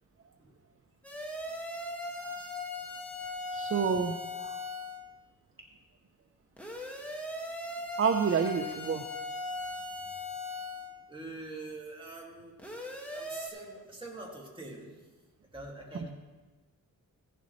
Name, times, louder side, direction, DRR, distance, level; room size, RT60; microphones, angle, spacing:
sound 1, 1.0-5.0 6.6-10.9 12.6-13.5, left 2 dB, 5° left, 1.8 m, -39 dB
voice 1, 3.5-4.6 8.0-9.1 15.9-16.1, right 6 dB, 40° right, 5 dB, 0.7 m, -29 dB
voice 2, 11.1-12.5 13.1-14.9 15.5-16.1, right 2 dB, 15° right, -2 dB, 2.3 m, -44 dB
16.0 x 11.0 x 3.2 m, 1.3 s
wide cardioid pair, 115°, 33 cm